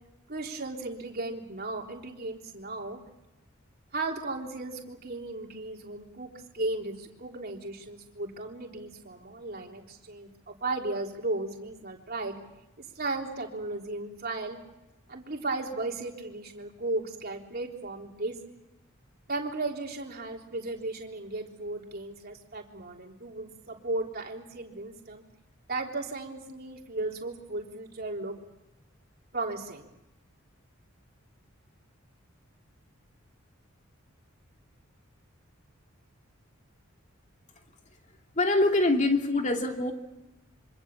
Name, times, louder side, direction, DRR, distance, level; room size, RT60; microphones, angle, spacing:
voice 1, 0.3-3.0 3.9-12.4 13.0-14.6 15.1-18.4 19.3-25.2 25.7-28.4 29.3-29.9, right 2 dB, 45° right, 1 dB, 3.5 m, -35 dB
voice 2, 38.3-39.9, left 2 dB, 35° left, 3 dB, 2.7 m, -24 dB
26.5 x 25.0 x 7.2 m, 0.95 s
head